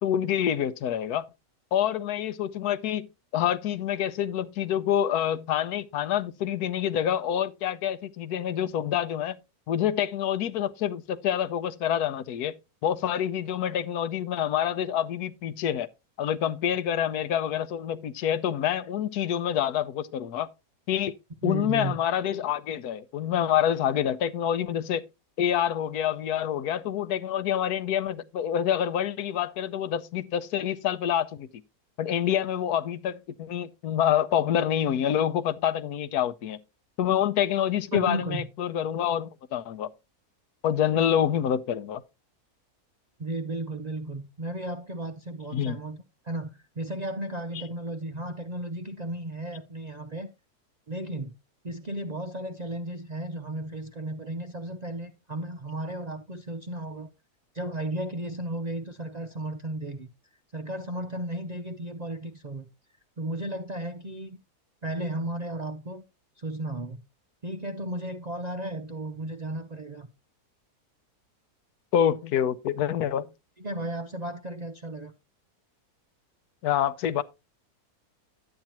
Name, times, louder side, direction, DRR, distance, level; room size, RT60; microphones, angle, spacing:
voice 1, 0.0-1.3 1.7-3.1 3.3-9.4 9.7-12.5 12.8-15.9 16.2-20.5 20.9-21.1 21.4-25.1 25.4-31.6 32.0-36.6 37.0-39.9 40.6-42.0 45.5-45.8 47.5-47.6 71.9-73.3 76.6-77.2, left 10 dB, 75° left, 1.2 m, -27 dB
voice 2, 21.4-22.0 37.9-38.5 43.2-50.3 50.9-51.3 51.6-57.1 57.5-60.1 60.5-62.7 63.2-64.3 64.8-66.0 66.4-67.0 67.4-70.1 73.6-75.1, right 1 dB, 60° right, 0.4 m, -34 dB
10.5 x 8.9 x 2.9 m
omnidirectional pair, 1.7 m